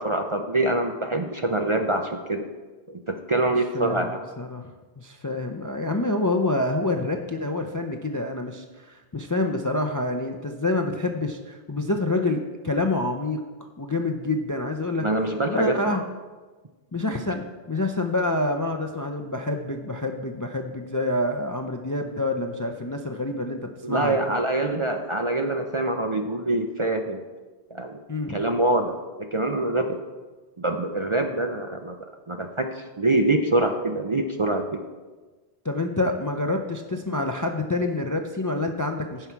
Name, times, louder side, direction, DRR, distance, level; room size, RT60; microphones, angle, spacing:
voice 1, 0.0-2.5 2.9-4.2 15.0-16.0 23.8-27.2 27.7-28.0 28.3-30.0 30.6-32.0 32.3-34.8, right 2 dB, 35° right, 4 dB, 0.5 m, -25 dB
voice 2, 3.7-13.4 13.8-15.1 15.5-16.0 16.9-24.2 28.1-28.4 35.6-39.3, left 2 dB, 25° left, 4 dB, 0.4 m, -27 dB
16.0 x 5.7 x 4.6 m, 1.3 s
omnidirectional pair, 1.1 m